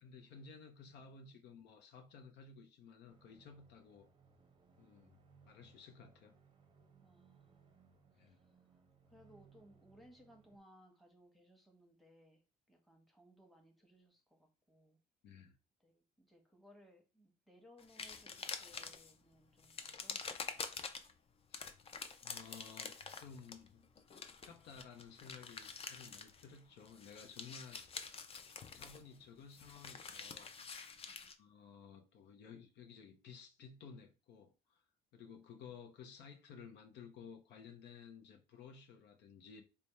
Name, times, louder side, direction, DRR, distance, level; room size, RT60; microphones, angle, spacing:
voice 1, 0.0-4.1 4.8-5.2 5.4-6.3 8.1-8.4 15.2-15.6 21.5-21.6 22.2-23.8 24.5-28.2 28.7-30.5 31.4-34.8 35.1-39.6, left 6 dB, 70° left, 0.7 m, -55 dB
sound 1, 3.1-10.6, right 5 dB, 25° right, 0.6 m, -67 dB
voice 2, 7.0-7.8 8.1-12.4 12.7-15.0 15.8-20.7 31.1-31.3, equal, ahead, 1.0 m, -65 dB
sound 2, 17.8-19.1 19.6-21.1 21.5-26.6 26.8-31.3, left 5 dB, 35° left, 0.5 m, -47 dB
3.3 x 2.1 x 4.1 m
cardioid pair, 105°, 18 cm